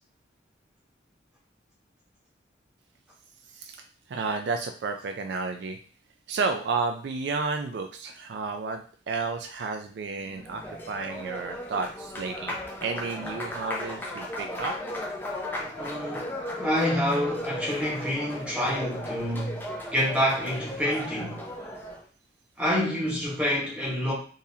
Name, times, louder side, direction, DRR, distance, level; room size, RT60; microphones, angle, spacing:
voice 1, 4.1-5.8 6.3-10.6 10.9-14.7, right 4 dB, 65° right, 0.3 m, -32 dB
Applause, 10.2-22.1, left 1 dB, 10° left, 0.4 m, -36 dB
voice 2, 15.8-21.4 22.6-24.1, equal, 5° right, 1.0 m, -27 dB
3.9 x 2.7 x 2.7 m
head